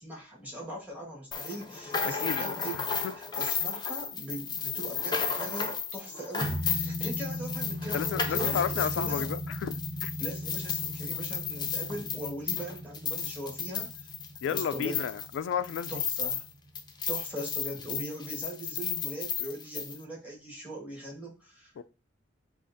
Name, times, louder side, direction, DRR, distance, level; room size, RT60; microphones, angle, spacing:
voice 1, 0.0-2.8 3.1-9.4 10.2-14.1 14.4-15.1 15.9-16.4 17.1-21.8, right 1 dB, 10° right, 1.6 m, -40 dB
sound 1, 1.3-16.5 16.7-20.0, left 6 dB, 25° left, 0.5 m, -33 dB
sound 2, 6.4-15.5 15.8-15.9, equal, 40° right, 0.7 m, -38 dB
voice 2, 7.9-9.8 10.0-10.1 14.4-15.9 21.8-21.9, left 7 dB, 85° left, 0.3 m, -32 dB
7.3 x 2.4 x 2.6 m
head